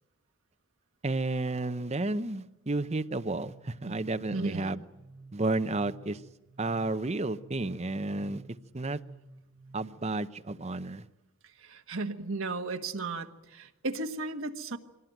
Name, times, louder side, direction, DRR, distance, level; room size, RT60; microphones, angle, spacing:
voice 1, 1.0-4.8 5.3-6.2 6.6-8.4 8.7-9.0 9.7-11.1, right 2 dB, 30° right, 10 dB, 0.7 m, -32 dB
sound 1, 2.9-9.8, right 2 dB, 10° right, 1.9 m, -52 dB
voice 2, 4.3-4.8 11.6-14.8, right 3 dB, 65° right, 6 dB, 1.4 m, -35 dB
23.5 x 18.0 x 9.2 m, 0.99 s
head